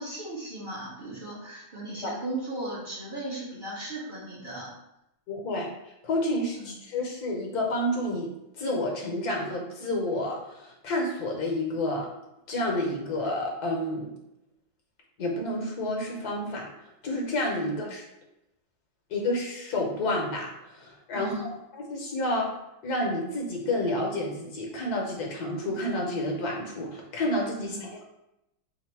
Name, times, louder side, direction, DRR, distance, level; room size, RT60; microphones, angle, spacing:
voice 1, 0.0-4.7 6.5-6.7 17.6-17.8 21.1-21.5 27.6-27.9, right 1 dB, 35° right, -6 dB, 0.9 m, -37 dB
voice 2, 5.3-5.7 6.0-8.3 8.6-12.1 12.5-14.1 15.2-16.7 17.0-18.0 19.1-21.3 21.7-22.5 22.8-28.0, left 1 dB, 60° left, 0 dB, 1.2 m, -29 dB
4.1 x 2.6 x 4.5 m, 0.88 s
omnidirectional pair, 2.1 m